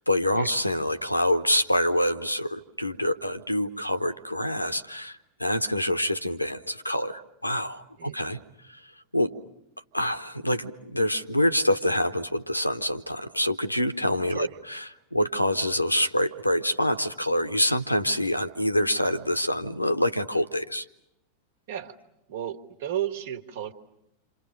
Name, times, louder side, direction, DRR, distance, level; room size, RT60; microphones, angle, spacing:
voice 1, 0.1-8.4 8.7-8.8 9.1-9.3 9.9-14.8 15.1-20.8, left 1 dB, 90° left, 12 dB, 1.0 m, -26 dB
voice 2, 8.0-8.3 14.3-14.5 21.7-22.0 22.3-23.7, right 10 dB, 55° right, 9 dB, 1.6 m, -33 dB
28.0 x 27.0 x 6.4 m, 0.84 s
figure-of-eight pair, 90°, 0 cm